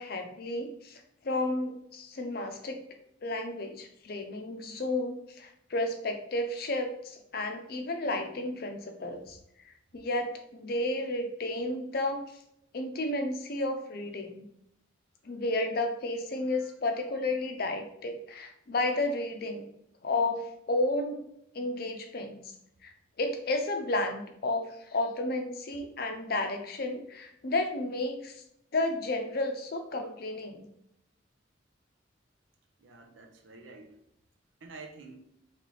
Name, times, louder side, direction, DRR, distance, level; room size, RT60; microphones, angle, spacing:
voice 1, 0.0-2.8 3.2-12.2 12.7-14.5 15.2-19.6 20.0-21.2 21.5-22.5 22.8-28.3 28.7-30.7, left 2 dB, 50° left, 5 dB, 0.5 m, -32 dB
voice 2, 32.8-34.0 34.6-35.2, right 3 dB, 80° right, 4 dB, 0.7 m, -48 dB
4.0 x 3.2 x 3.1 m, 0.76 s
head